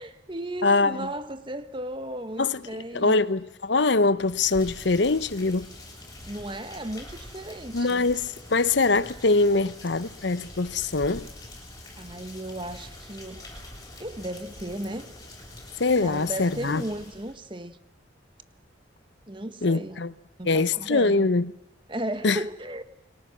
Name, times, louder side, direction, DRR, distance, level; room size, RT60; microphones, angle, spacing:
voice 1, 0.0-3.2 6.3-8.1 12.0-13.4 14.0-15.1 16.0-17.8 19.3-20.0 20.4-21.3 21.9-22.8, right 1 dB, 25° right, 1.5 m, -35 dB
voice 2, 0.6-1.1 2.4-2.6 2.9-5.7 7.7-11.3 15.8-16.8 19.6-20.1 20.4-21.5 22.2-22.4, left 3 dB, 70° left, 0.9 m, -23 dB
Rain, 4.2-17.4, left 1 dB, 20° left, 7.4 m, -45 dB
29.5 x 23.5 x 7.4 m
head